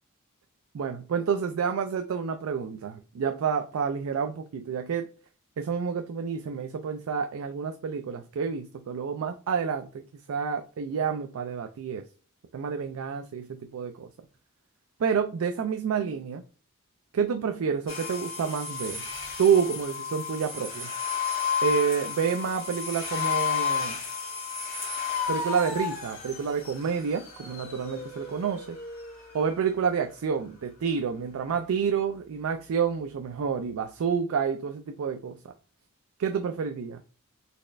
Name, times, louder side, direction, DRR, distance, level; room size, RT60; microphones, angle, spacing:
voice 1, 0.7-5.1 5.6-10.0 10.3-12.1 12.5-14.1 15.0-16.4 17.1-19.1 19.4-20.9 21.6-24.0 25.3-28.8 29.3-35.4 36.2-37.0, right 6 dB, 70° right, 0.4 m, -29 dB
sound 1, 17.9-29.6, left 6 dB, 45° left, 1.8 m, -32 dB
4.1 x 3.2 x 2.4 m
head